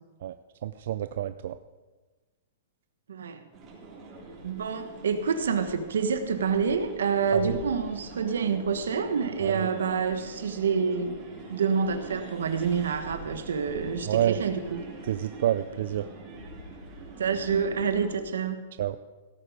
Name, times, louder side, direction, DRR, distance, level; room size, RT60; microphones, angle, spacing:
voice 1, 0.6-1.6 7.3-7.6 9.4-9.7 14.1-14.4 15.0-16.1 18.8-19.0, right 11 dB, 65° right, 12 dB, 0.4 m, -28 dB
voice 2, 3.1-3.5 4.4-11.1 11.5-14.8 17.2-18.6, right 6 dB, 90° right, 9 dB, 1.3 m, -27 dB
sound 1, 3.5-18.2, right 2 dB, 25° right, 4.0 m, -44 dB
16.5 x 8.3 x 5.1 m, 1.3 s
hypercardioid pair, 150°, 0 cm